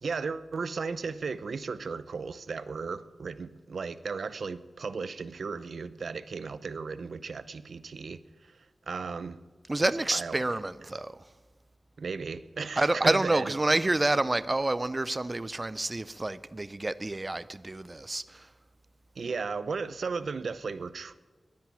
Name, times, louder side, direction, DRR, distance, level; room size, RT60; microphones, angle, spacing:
voice 1, 0.0-8.2 8.9-9.4 10.1-10.4 12.0-13.5 19.2-21.1, right 4 dB, 85° right, 0.6 m, -35 dB
voice 2, 9.7-11.2 12.8-18.5, right 2 dB, 25° right, 0.4 m, -28 dB
10.5 x 10.5 x 9.1 m
wide cardioid pair, 115°, 0 cm